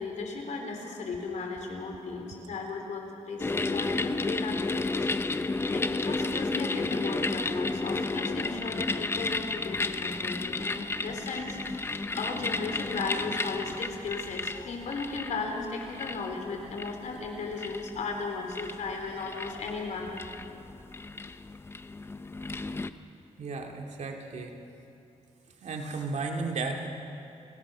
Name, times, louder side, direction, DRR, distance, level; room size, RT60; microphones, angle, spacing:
voice 1, 0.0-4.9 5.7-20.2, left 4 dB, 85° left, 2 dB, 3.6 m, -36 dB
sound 1, 3.4-22.9, left 3 dB, 20° left, 0.6 m, -33 dB
voice 2, 23.4-24.6 25.6-26.9, right 3 dB, 75° right, 2 dB, 2.4 m, -34 dB
29.5 x 17.5 x 6.2 m, 2.7 s
wide cardioid pair, 140°, 12 cm